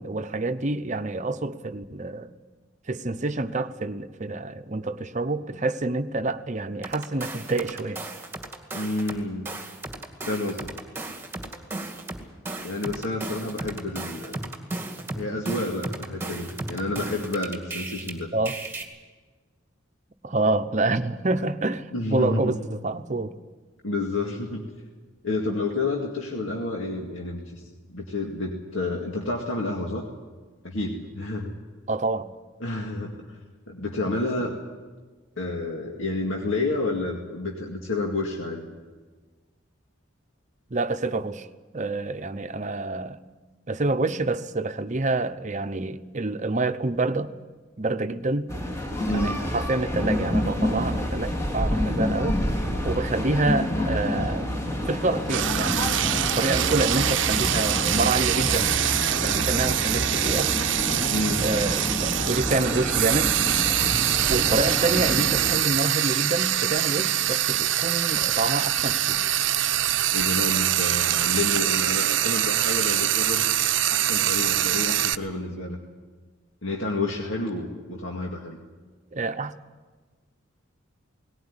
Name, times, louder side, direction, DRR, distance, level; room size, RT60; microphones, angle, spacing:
voice 1, 0.0-2.3 2.9-8.0 18.3-18.6 20.2-23.4 31.9-32.3 40.7-41.5 41.7-43.2 43.7-47.3 47.8-48.5 49.1-52.4 52.8-54.5 54.9-58.7 59.2-60.5 61.4-63.3 64.3-69.3 79.1-79.6, right 2 dB, 40° right, 10 dB, 0.9 m, -27 dB
sound 1, 6.8-9.2 9.5-18.1 18.5-18.8, right 2 dB, 10° right, 2.2 m, -35 dB
voice 2, 8.8-9.5 10.2-10.7 12.6-14.4 15.1-18.3 21.9-22.5 23.8-24.7 25.2-30.0 30.6-31.5 32.6-33.4 33.7-34.6 35.4-38.7 49.0-49.4 61.1-61.4 70.1-73.5 73.9-75.8 76.6-78.6, left 2 dB, 80° left, 0 dB, 2.2 m, -29 dB
sound 2, 48.5-65.6, left 1 dB, 15° left, 2.7 m, -28 dB
Frying (food), 55.3-75.1, right 12 dB, 70° right, 0.7 m, -24 dB
19.0 x 17.5 x 9.8 m, 1.3 s
head